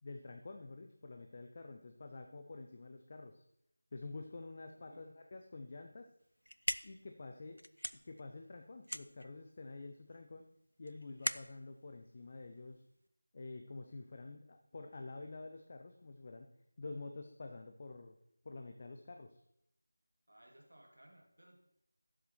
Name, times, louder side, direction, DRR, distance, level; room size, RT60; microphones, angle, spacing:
voice 1, 0.0-3.4 3.9-6.1 6.8-7.6 7.9-10.5 10.8-12.8 13.3-16.5 16.8-18.2 18.4-19.4, left 3 dB, 30° left, 5 dB, 0.6 m, -48 dB
voice 2, 4.7-5.1 20.3-21.6, right 1 dB, 65° right, 1 dB, 2.3 m, -61 dB
sound 1, 6.2-13.1, equal, 90° left, 0.5 m, -43 dB
12.5 x 7.4 x 4.4 m, 0.77 s
figure-of-eight pair, 170°, 0 cm